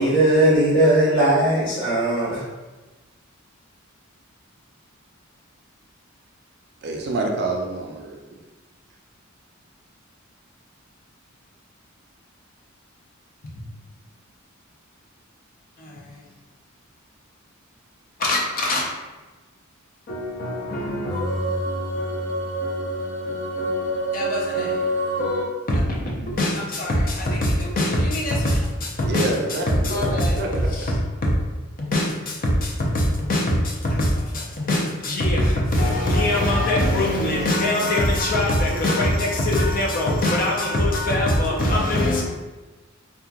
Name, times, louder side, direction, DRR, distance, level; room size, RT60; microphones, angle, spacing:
voice 1, 0.0-2.5, right 1 dB, 65° left, -7 dB, 1.0 m, -18 dB
voice 2, 6.8-8.2 29.1-30.5, right 2 dB, 55° right, 1 dB, 0.4 m, -27 dB
voice 3, 15.8-16.2 18.2-18.9 20.1-29.3 29.7-31.3 31.8-42.2, left 1 dB, 45° left, -2 dB, 0.5 m, -23 dB
2.9 x 2.3 x 2.3 m, 1.2 s
head